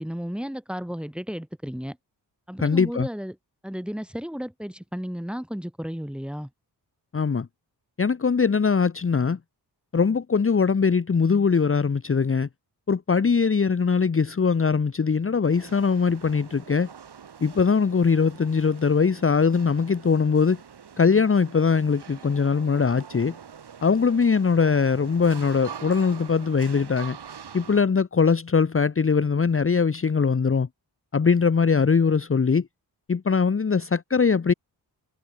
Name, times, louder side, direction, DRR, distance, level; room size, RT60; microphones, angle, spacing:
voice 1, 0.0-2.0 2.5-3.4 3.6-6.5, equal, ahead, 3.9 m, -33 dB
voice 2, 2.6-3.1 7.1-7.5 8.0-9.4 9.9-12.5 12.9-16.9 17.4-20.6 21.0-23.4 23.8-27.2 27.5-30.7 31.1-32.7 33.1-34.5, left 5 dB, 35° left, 1.1 m, -21 dB
sound 1, 15.5-27.8, right 7 dB, 80° right, 7.0 m, -44 dB
wide cardioid pair, 100°, 40 cm